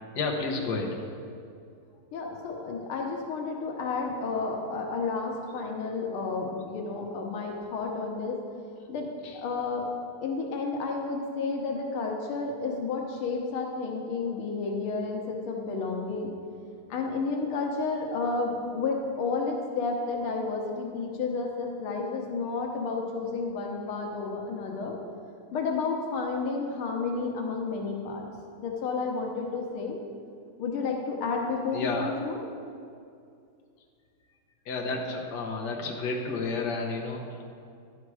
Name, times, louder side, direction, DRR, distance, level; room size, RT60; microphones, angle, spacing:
voice 1, 0.1-1.0 9.2-9.4 31.7-32.1 34.6-37.6, left 3 dB, 60° left, 0 dB, 1.5 m, -31 dB
voice 2, 2.1-8.4 8.9-9.1 9.3-9.9 10.2-16.3 16.9-24.9 25.5-28.3 28.6-30.0 30.6-32.4, left 4 dB, 85° left, 1 dB, 1.9 m, -31 dB
10.5 x 5.8 x 4.8 m, 2.4 s
omnidirectional pair, 2.3 m